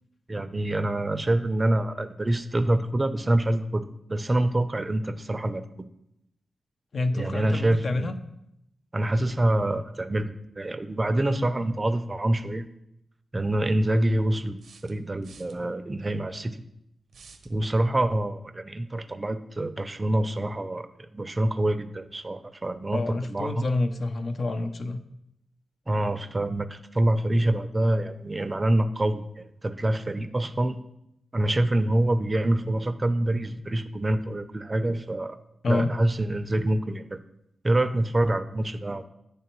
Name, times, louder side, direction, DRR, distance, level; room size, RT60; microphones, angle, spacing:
voice 1, 0.3-3.8 4.1-5.6 7.1-8.1 8.9-12.6 13.3-14.6 14.8-16.6 17.5-20.9 21.1-23.0 23.3-23.6 25.9-30.8 31.3-35.4 35.7-37.2 37.6-39.0, right 1 dB, 30° right, 10 dB, 0.4 m, -26 dB
voice 2, 6.9-8.2 22.9-25.0 35.6-35.9, left 2 dB, 60° left, 8 dB, 0.5 m, -28 dB
sound 1, 14.6-15.6 17.1-17.5, right 5 dB, 80° right, 0.5 m, -51 dB
9.4 x 3.3 x 3.0 m, 0.81 s
cardioid pair, 55°, 0 cm